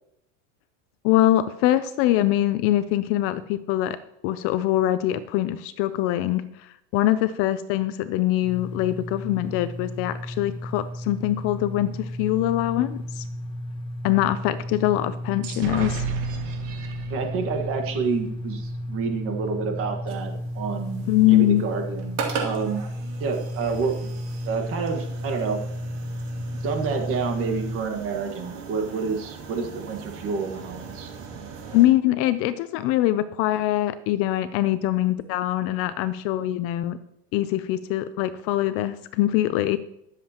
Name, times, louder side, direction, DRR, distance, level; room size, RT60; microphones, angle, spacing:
voice 1, 1.0-4.0 4.2-13.2 14.0-16.1 21.1-21.6 31.7-37.0 37.3-39.8, left 14 dB, 40° left, 13 dB, 0.4 m, -23 dB
sound 1, 8.4-27.8, equal, 15° left, 1.0 m, -33 dB
sound 2, 15.4-19.1, right 6 dB, 80° right, 2.0 m, -34 dB
voice 2, 17.1-22.8 23.2-24.1 24.4-25.6 26.6-31.1, right 5 dB, 35° right, 5 dB, 1.5 m, -29 dB
sound 3, 20.1-31.9, right 5 dB, 60° right, 2.4 m, -39 dB
20.0 x 7.5 x 2.9 m, 0.79 s
supercardioid pair, 155°, 37 cm